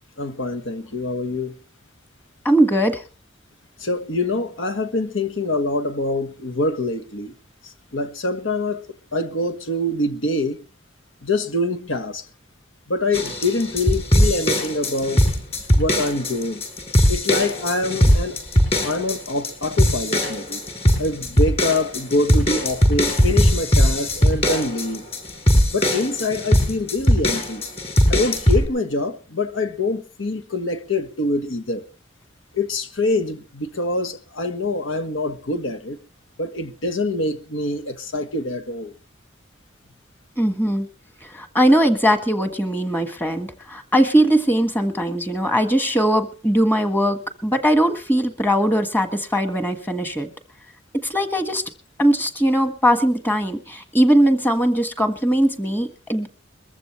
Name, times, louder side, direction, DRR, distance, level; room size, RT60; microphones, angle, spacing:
voice 1, 0.2-1.6 3.8-7.3 7.9-8.9 9.1-10.6 11.2-12.2 12.9-15.3 15.7-16.6 17.1-18.4 18.8-20.6 21.0-25.0 25.7-27.6 28.1-31.8 32.5-36.0 36.4-38.9, left 2 dB, 85° left, 1.5 m, -25 dB
voice 2, 2.4-3.0 40.4-40.9 41.2-50.3 51.0-51.6 52.0-56.3, right 1 dB, 10° left, 1.5 m, -20 dB
sound 1, 13.1-28.7, equal, 30° left, 7.3 m, -19 dB
22.0 x 14.5 x 3.2 m
head